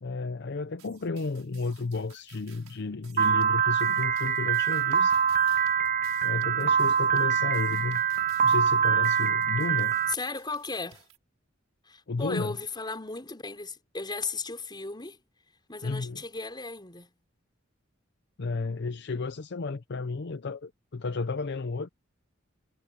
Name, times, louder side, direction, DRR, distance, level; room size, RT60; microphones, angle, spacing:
voice 1, 0.0-5.1 6.2-8.0 8.4-9.9 12.1-12.6 15.8-16.2 18.4-21.9, left 3 dB, 55° left, 0.6 m, -33 dB
sound 1, 0.8-11.2, right 10 dB, 85° right, 6.4 m, -57 dB
Piano, 3.2-10.1, right 7 dB, 40° right, 0.7 m, -24 dB
voice 2, 10.1-11.1 11.8-15.2 15.7-17.1, left 3 dB, 20° left, 5.1 m, -36 dB
head